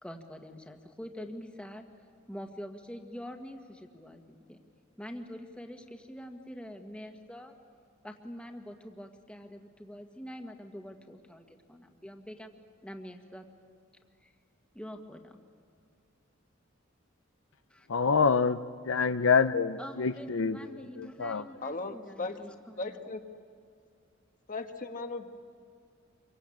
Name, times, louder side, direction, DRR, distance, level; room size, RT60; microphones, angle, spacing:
voice 1, 0.0-1.8 2.3-4.6 5.0-7.5 8.0-12.5 12.8-13.5 14.2-14.3 14.7-15.4 17.7-17.9 19.0-19.1 19.8-23.1, equal, 5° left, 4 dB, 1.6 m, -45 dB
voice 2, 17.9-18.6 18.8-21.4, left 5 dB, 80° left, 11 dB, 0.7 m, -26 dB
voice 3, 21.6-22.4 22.8-23.2 24.5-25.3, left 3 dB, 40° left, 6 dB, 1.5 m, -37 dB
26.0 x 23.5 x 8.7 m, 2.3 s
head